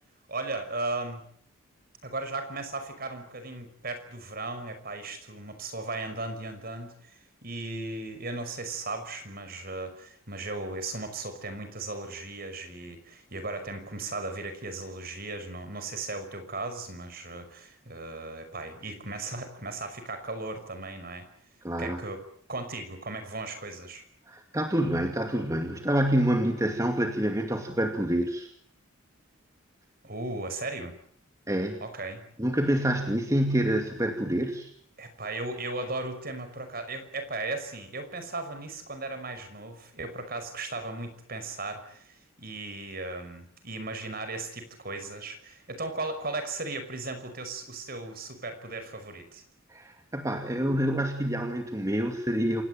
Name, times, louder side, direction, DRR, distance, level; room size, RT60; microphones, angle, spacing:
voice 1, 0.3-1.2 2.0-21.3 21.8-22.2 22.5-24.0 30.0-31.0 31.8-32.2 35.0-49.4, right 2 dB, 45° right, 9 dB, 5.6 m, -36 dB
voice 2, 21.6-22.0 24.3-28.5 31.5-31.8 32.4-34.7 49.7-52.6, right 1 dB, 15° right, 4 dB, 2.3 m, -27 dB
28.0 x 18.5 x 9.0 m, 0.63 s
head